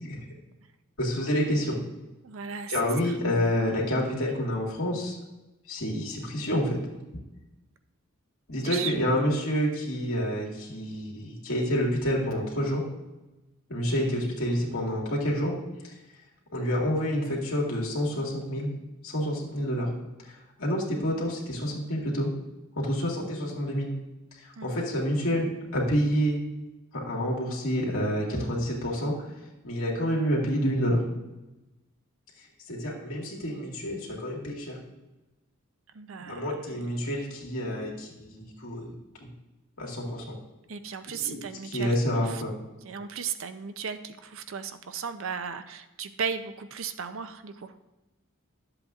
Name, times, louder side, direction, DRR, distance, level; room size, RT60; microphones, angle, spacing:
voice 1, 1.0-1.8 2.7-5.2 5.7-6.8 8.5-12.8 13.7-15.5 15.8-15.9 16.5-18.7 19.0-19.9 20.2-22.3 22.7-23.9 24.4-26.4 26.9-29.2 29.6-31.0 32.7-34.8 36.3-38.9 39.2-39.3 39.8-40.4 41.3-41.4 41.6-42.5, equal, 70° left, -3 dB, 2.1 m, -28 dB
voice 2, 2.2-2.7 3.0-3.1 8.6-9.2 24.6-24.8 35.9-36.8 40.7-42.4 42.8-47.8, right 6 dB, 65° right, 10 dB, 0.5 m, -36 dB
11.5 x 7.8 x 2.4 m, 1.0 s
head